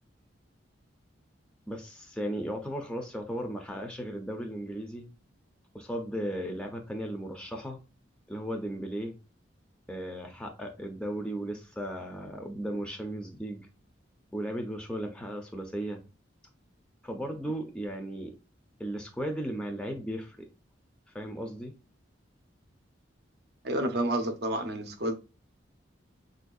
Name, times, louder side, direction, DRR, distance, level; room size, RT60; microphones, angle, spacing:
voice 1, 1.7-5.1 5.7-7.8 8.3-9.2 9.9-13.7 14.3-16.0 17.0-18.3 18.8-20.5 21.1-21.7, right 1 dB, 5° left, 0.5 m, -36 dB
voice 2, 23.6-25.1, right 1 dB, 55° right, 0.6 m, -29 dB
3.9 x 2.6 x 2.3 m
head